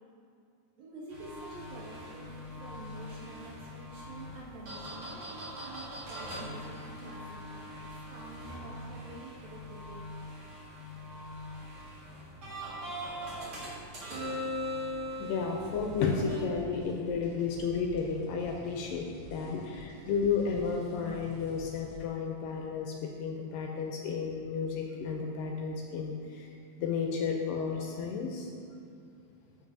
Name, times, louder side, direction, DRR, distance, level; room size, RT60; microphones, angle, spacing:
voice 1, 0.8-7.7 8.1-10.0, right 2 dB, 75° right, -7 dB, 3.5 m, -48 dB
sound 1, 1.1-16.4, left 1 dB, 45° right, 2.0 m, -41 dB
voice 2, 15.2-26.5 26.8-28.5, left 5 dB, 80° left, 1 dB, 2.1 m, -32 dB
sound 2, 15.6-22.0, left 2 dB, 30° left, 1.2 m, -50 dB
14.5 x 5.2 x 2.6 m, 2.5 s
omnidirectional pair, 4.2 m